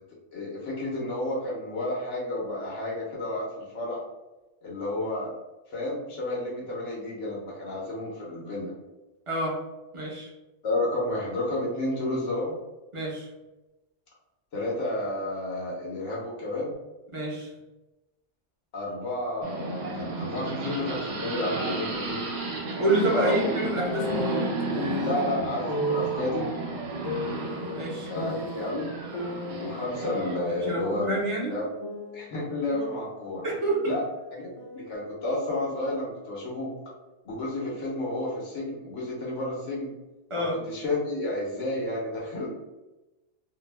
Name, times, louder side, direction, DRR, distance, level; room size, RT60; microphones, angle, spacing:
voice 1, 0.3-4.0 4.6-5.3 5.7-8.7 10.6-12.6 14.5-16.7 18.7-22.2 23.1-23.4 25.0-26.5 28.1-29.0 29.5-31.1 31.5-31.7 32.1-33.4 33.9-34.0 34.3-34.4 34.7-36.7 37.2-39.9 40.4-42.6, left 1 dB, 85° left, -5 dB, 1.1 m, -31 dB
voice 2, 9.3-9.6 9.9-10.3 12.9-13.3 17.1-17.5 22.8-24.5 27.7-28.1 30.5-31.5 33.4-33.8 40.3-40.6, right 1 dB, 35° right, -3 dB, 0.5 m, -28 dB
sound 1, 19.4-30.4, right 3 dB, 70° right, 0.9 m, -33 dB
sound 2, 23.8-25.2 25.7-26.2 27.0-28.7 29.1-30.7 31.0-33.1 33.4-34.9, left 1 dB, 45° left, 0.4 m, -34 dB
2.7 x 2.1 x 3.2 m, 1.0 s
omnidirectional pair, 1.2 m